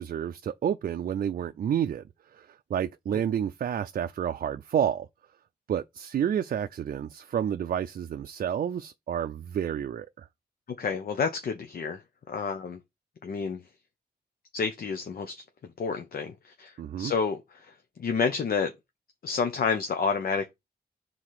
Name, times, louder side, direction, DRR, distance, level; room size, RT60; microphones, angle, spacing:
voice 1, 0.0-5.1 5.7-10.3 16.8-17.1, right 9 dB, 60° right, 0.4 m, -30 dB
voice 2, 10.8-12.0 12.3-12.8 13.2-13.6 14.5-15.3 15.8-16.3 16.6-17.4 18.0-18.7 19.2-20.5, left 5 dB, 65° left, 0.9 m, -29 dB
4.8 x 4.0 x 5.7 m
wide cardioid pair, 140°, 16 cm